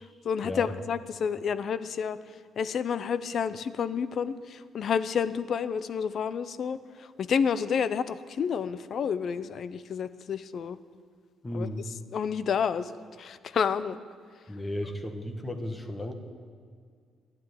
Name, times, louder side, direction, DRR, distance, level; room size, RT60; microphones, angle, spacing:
voice 1, 0.2-2.2 2.6-10.8 11.5-11.7 12.1-14.0, left 7 dB, 60° left, 15 dB, 0.7 m, -30 dB
voice 2, 11.4-11.9 14.5-16.1, left 1 dB, 20° left, 6 dB, 1.6 m, -34 dB
11.5 x 9.4 x 9.8 m, 2.1 s
cardioid pair, 90°, 0 cm